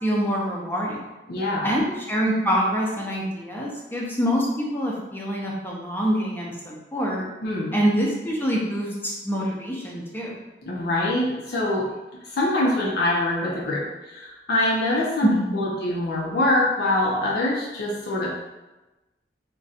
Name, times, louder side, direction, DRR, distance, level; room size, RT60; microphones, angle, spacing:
voice 1, 0.0-1.1 1.6-7.2 7.7-10.3 15.2-15.7, equal, 10° left, -3 dB, 0.5 m, -25 dB
voice 2, 1.3-1.8 7.4-7.8 10.7-11.9 12.3-18.3, left 1 dB, 60° left, -4 dB, 0.5 m, -24 dB
2.5 x 2.2 x 3.9 m, 1.1 s
head